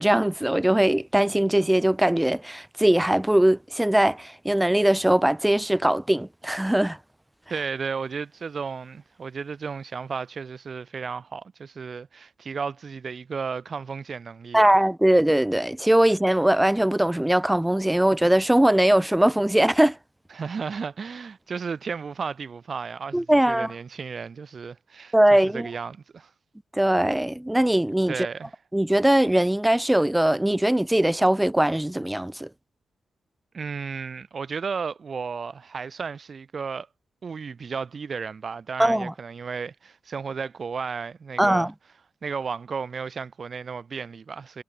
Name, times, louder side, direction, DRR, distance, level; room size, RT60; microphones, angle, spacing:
voice 1, 0.0-7.0 14.5-20.0 23.1-23.7 25.1-25.7 26.7-28.3 28.7-32.5 38.8-39.1 41.4-41.7, right 1 dB, 5° right, 0.8 m, -21 dB
voice 2, 7.5-14.8 20.3-26.3 28.1-28.5 33.5-36.9 37.2-41.7 42.2-44.6, right 5 dB, 40° right, 2.3 m, -34 dB
wide cardioid pair, 145°, 0 cm